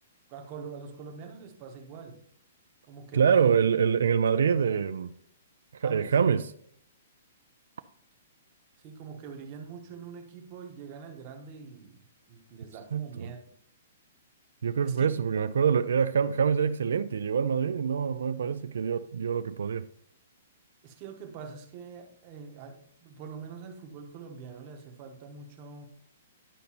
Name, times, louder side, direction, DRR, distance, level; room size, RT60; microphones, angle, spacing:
voice 1, 0.3-2.2 2.9-3.6 5.8-6.1 8.8-13.4 14.8-15.1 20.8-25.9, right 5 dB, 25° right, 0.8 m, -44 dB
voice 2, 3.1-5.1 5.7-6.4 12.9-13.3 14.6-19.8, right 7 dB, 80° right, 0.3 m, -25 dB
10.0 x 5.2 x 2.9 m
hypercardioid pair, 175°, 0 cm